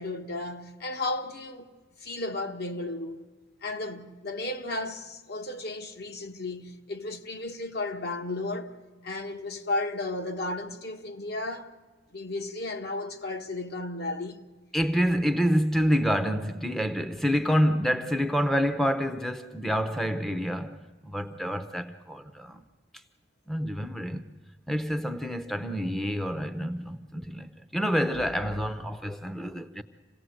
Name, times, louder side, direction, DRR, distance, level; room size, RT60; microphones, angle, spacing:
voice 1, 0.0-1.7 2.0-3.2 3.6-8.7 9.0-11.7 12.1-14.4, left 2 dB, 60° left, 1.4 m, -34 dB
voice 2, 14.7-20.8 21.0-22.6 23.5-24.3 24.7-29.8, equal, ahead, 0.7 m, -27 dB
27.0 x 17.5 x 7.8 m
head